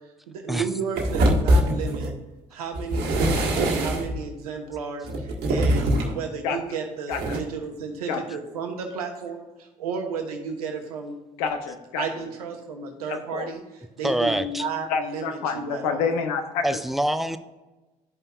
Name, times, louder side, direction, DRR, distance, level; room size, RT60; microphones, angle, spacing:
voice 1, 0.3-2.1 2.5-11.2 11.9-13.6 14.0-16.0, right 5 dB, 85° right, 4 dB, 1.0 m, -33 dB
sound 1, 1.0-2.2 2.7-4.2 5.0-6.2 7.1-7.4, right 1 dB, 60° right, 1.4 m, -23 dB
voice 2, 7.1-7.4 8.1-8.2 11.4-12.1 13.1-13.5 14.9-16.6, left 5 dB, 80° left, 7 dB, 0.8 m, -28 dB
voice 3, 14.0-14.7 16.6-17.4, right 1 dB, ahead, 10 dB, 0.5 m, -25 dB
12.0 x 5.3 x 2.4 m, 1.1 s
hypercardioid pair, 55°, 19 cm